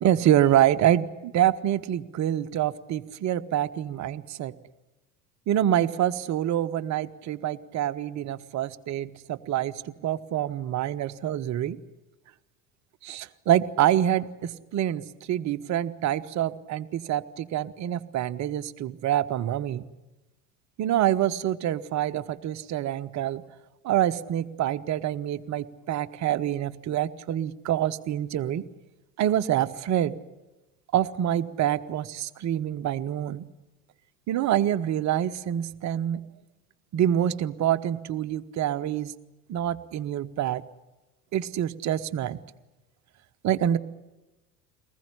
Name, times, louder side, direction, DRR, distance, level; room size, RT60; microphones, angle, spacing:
voice 1, 0.0-4.5 5.5-11.8 13.0-15.0 15.3-19.9 20.8-23.4 23.8-28.6 29.2-30.2 30.9-33.5 34.3-36.3 36.9-39.1 39.5-40.6 41.3-42.4 43.4-43.8, right 11 dB, 35° right, 11 dB, 1.0 m, -26 dB
23.5 x 20.0 x 10.0 m, 1.1 s
figure-of-eight pair, 65°, 48 cm